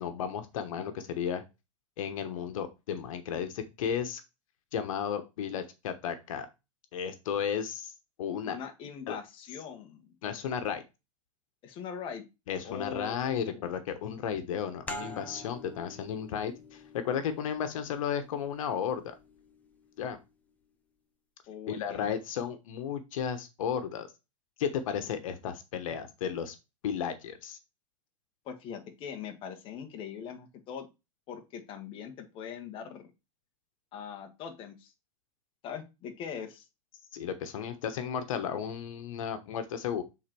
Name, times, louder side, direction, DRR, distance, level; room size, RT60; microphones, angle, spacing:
voice 1, 0.0-1.4 2.0-4.2 4.7-6.5 6.9-7.9 8.2-8.6 9.1-9.2 10.2-10.8 12.5-19.1 20.0-20.2 21.7-24.1 24.6-26.6 26.8-27.6 37.1-40.0, left 8 dB, 80° left, 9 dB, 1.2 m, -34 dB
voice 2, 8.4-10.1 11.6-12.2 12.6-13.8 21.5-22.1 28.4-30.9 31.3-33.1 33.9-34.9 35.6-36.6, left 7 dB, 30° left, 4 dB, 1.2 m, -41 dB
sound 1, 14.9-20.1, left 1 dB, 10° left, 0.7 m, -46 dB
7.3 x 3.9 x 4.5 m, 0.25 s
supercardioid pair, 155°, 17 cm